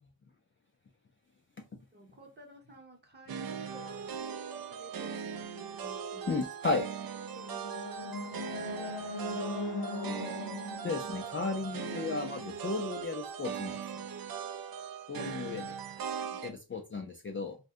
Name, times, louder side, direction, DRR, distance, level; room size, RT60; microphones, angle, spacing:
voice 1, 1.9-6.4 7.0-9.9 16.1-16.6, right 1 dB, 25° right, 0.8 m, -55 dB
sound 1, 3.3-16.5, right 7 dB, 55° right, 0.5 m, -39 dB
voice 2, 6.3-6.9 10.8-13.8 15.1-15.7 16.4-17.6, left 3 dB, 30° left, 0.4 m, -34 dB
sound 2, 7.3-12.4, left 2 dB, 65° left, 0.7 m, -40 dB
2.6 x 2.2 x 3.6 m
wide cardioid pair, 140°, 42 cm